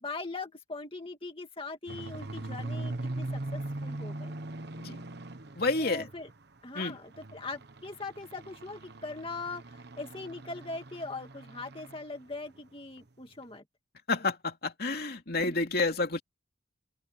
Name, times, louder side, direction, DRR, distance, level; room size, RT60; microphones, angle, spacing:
voice 1, 0.0-4.3 5.8-6.3 6.6-13.6 15.4-15.7, left 3 dB, 30° left, 2.1 m, -41 dB
sound 1, 1.9-6.4 6.8-12.0 12.3-12.6 13.0-13.1 13.4-13.5, right 2 dB, 60° right, 1.2 m, -40 dB
voice 2, 5.6-6.1 6.7-6.9 14.1-16.2, left 3 dB, 55° left, 2.7 m, -29 dB
open air
head